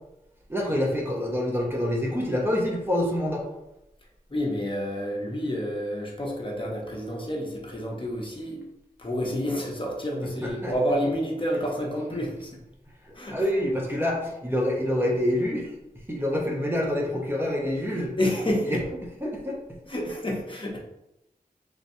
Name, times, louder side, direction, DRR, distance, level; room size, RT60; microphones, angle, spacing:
voice 1, 0.5-3.4 10.4-10.7 13.0-15.7 16.1-18.1 18.7-18.8 19.2-19.5, left 1 dB, 15° right, -2 dB, 0.7 m, -26 dB
voice 2, 4.3-8.6 9.0-12.5 13.1-13.5 18.2-18.8 19.2-19.3 19.9-20.8, equal, 35° left, -2 dB, 0.7 m, -29 dB
3.3 x 2.9 x 2.7 m, 0.87 s
wide cardioid pair, 75°, 15 cm